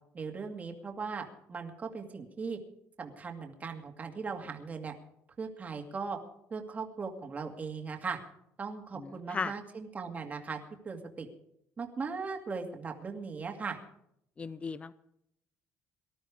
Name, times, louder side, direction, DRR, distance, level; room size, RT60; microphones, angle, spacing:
voice 1, 0.1-2.6 3.0-4.9 5.4-6.2 6.5-8.2 8.6-10.6 10.8-11.3 11.8-13.8, right 5 dB, 30° right, 3 dB, 2.2 m, -38 dB
voice 2, 9.0-9.5 14.4-14.9, left 5 dB, 20° left, 16 dB, 0.6 m, -36 dB
19.0 x 12.5 x 4.9 m, 0.73 s
cardioid pair, 125°, 5 cm